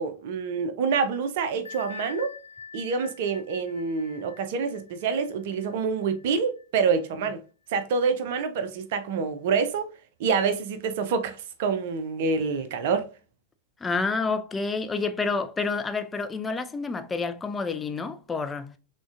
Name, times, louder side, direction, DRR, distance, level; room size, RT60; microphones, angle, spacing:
voice 1, 0.0-2.3 2.7-7.4 7.7-9.9 10.2-13.1, right 5 dB, 50° right, 0.5 m, -27 dB
Bell, 1.6-7.1, left 6 dB, 70° left, 0.5 m, -45 dB
voice 2, 13.8-18.7, left 4 dB, 15° left, 0.4 m, -29 dB
6.0 x 2.2 x 2.4 m
figure-of-eight pair, 90°, 0 cm